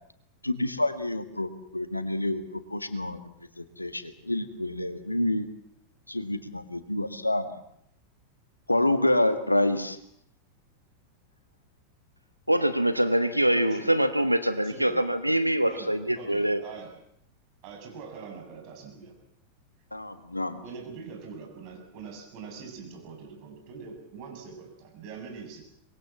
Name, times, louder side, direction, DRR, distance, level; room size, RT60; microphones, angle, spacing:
voice 1, 0.4-2.4 2.7-3.2 3.6-5.5 6.1-7.5 8.7-10.0 19.9-20.6, left 1 dB, 85° left, 1.9 m, -27 dB
voice 2, 12.5-16.6, right 1 dB, 90° right, 1.1 m, -24 dB
voice 3, 13.6-13.9 14.6-15.0 15.6-16.9 17.6-19.1 20.6-25.6, right 5 dB, 45° right, 7.4 m, -43 dB
24.5 x 22.0 x 7.4 m
figure-of-eight pair, 90°, 0 cm